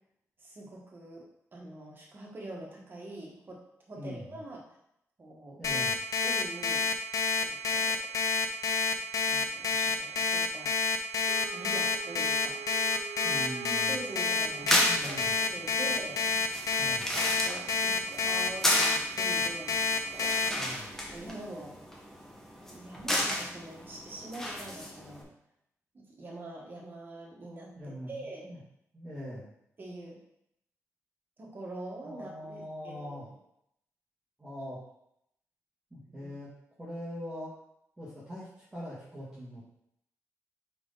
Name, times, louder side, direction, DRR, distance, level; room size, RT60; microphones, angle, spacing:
voice 1, 0.4-3.6 3.9-4.6 5.2-5.6 6.2-6.9 7.4-8.0 9.2-10.7 11.5-12.6 13.7-16.2 17.4-19.8 21.1-21.8 22.6-25.3 25.9-28.5 29.8-30.2 31.4-33.3 36.2-36.3, right 1 dB, 35° right, -3 dB, 1.6 m, -44 dB
voice 2, 3.9-4.4 5.6-6.0 13.2-14.0 14.9-15.4 16.8-17.2 20.6-21.0 27.8-28.6 28.9-29.5 32.0-33.3 34.4-34.8 35.9-36.5 36.8-37.5 38.0-39.7, equal, 10° right, -11 dB, 1.8 m, -42 dB
Alarm, 5.6-20.5, left 4 dB, 85° left, 0.7 m, -28 dB
Wind instrument woodwind instrument, 11.3-15.7, right 7 dB, 75° right, 0.4 m, -44 dB
sound 1, 14.4-25.2, equal, 5° left, 1.2 m, -34 dB
5.1 x 4.8 x 4.0 m, 0.75 s
wide cardioid pair, 130°, 6 cm